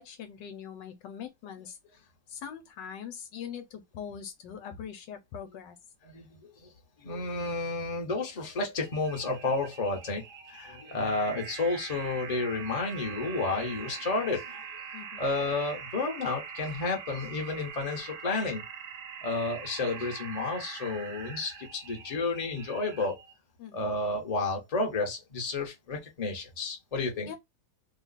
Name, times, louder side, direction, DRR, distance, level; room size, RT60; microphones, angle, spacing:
voice 1, 0.0-5.8 14.9-15.3 23.6-24.0 27.3-27.4, left 8 dB, 75° left, 1.3 m, -42 dB
voice 2, 6.0-6.7 7.0-14.6 15.2-18.6 19.2-23.2 23.7-27.3, left 3 dB, 30° left, 0.8 m, -31 dB
sound 1, 8.7-23.3, right 6 dB, 60° right, 0.9 m, -43 dB
3.0 x 2.3 x 3.9 m
omnidirectional pair, 2.0 m